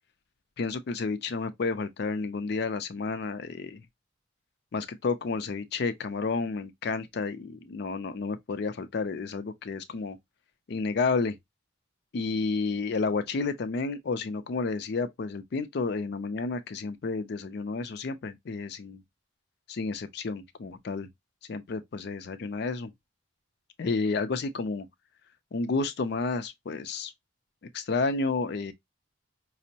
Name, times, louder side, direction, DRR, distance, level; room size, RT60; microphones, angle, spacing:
voice 1, 0.6-3.8 4.7-10.2 10.7-11.4 12.1-19.0 19.7-21.1 21.5-22.9 23.8-24.9 25.5-27.1 27.7-28.7, left 4 dB, 55° left, 0.4 m, -31 dB
5.1 x 2.0 x 2.7 m
head